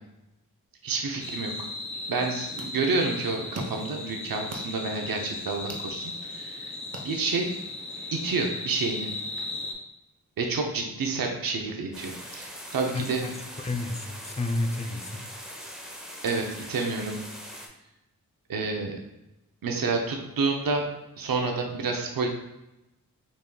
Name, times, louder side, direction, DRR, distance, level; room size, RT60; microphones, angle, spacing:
voice 1, 0.8-1.7 2.1-6.8 7.0-7.5 8.1-9.1 10.4-13.2 16.2-17.2 18.5-18.9 19.6-20.9 21.2-22.3, right 3 dB, 75° right, 2 dB, 0.7 m, -29 dB
sound 1, 1.2-9.7, left 2 dB, 35° left, 1.0 m, -37 dB
sound 2, 2.1-7.7, right 1 dB, 45° right, 0.9 m, -44 dB
sound 3, 11.9-17.7, equal, ahead, 0.9 m, -42 dB
voice 2, 12.9-15.3, left 2 dB, 20° left, 6 dB, 0.5 m, -31 dB
5.3 x 3.1 x 2.3 m, 0.93 s
cardioid pair, 50°, 35 cm